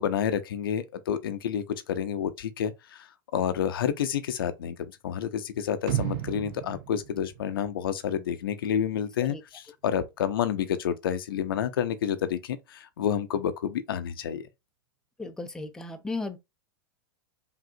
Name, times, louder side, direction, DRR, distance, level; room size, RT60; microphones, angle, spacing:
voice 1, 0.0-3.1 3.3-4.7 5.0-14.4, left 9 dB, 70° left, 0.6 m, -29 dB
sound 1, 5.9-8.0 8.4-8.5, right 13 dB, 55° right, 0.4 m, -33 dB
voice 2, 15.2-16.4, left 3 dB, 5° left, 0.5 m, -35 dB
5.0 x 2.7 x 2.6 m
hypercardioid pair, 105°, 12 cm